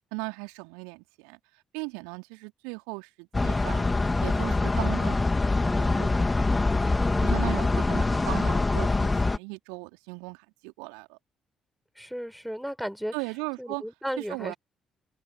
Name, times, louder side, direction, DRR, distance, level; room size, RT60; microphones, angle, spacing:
voice 1, 0.1-1.4 1.7-3.8 4.2-5.2 5.6-6.2 7.2-11.2 13.1-13.8 14.2-14.5, right 35 dB, 70° right, 3.7 m, -37 dB
sound 1, 3.3-9.4, left 3 dB, 20° left, 3.6 m, -24 dB
voice 2, 6.9-7.4 12.0-13.1 13.6-14.6, equal, ahead, 4.8 m, -35 dB
open air
figure-of-eight pair, 45°, 0 cm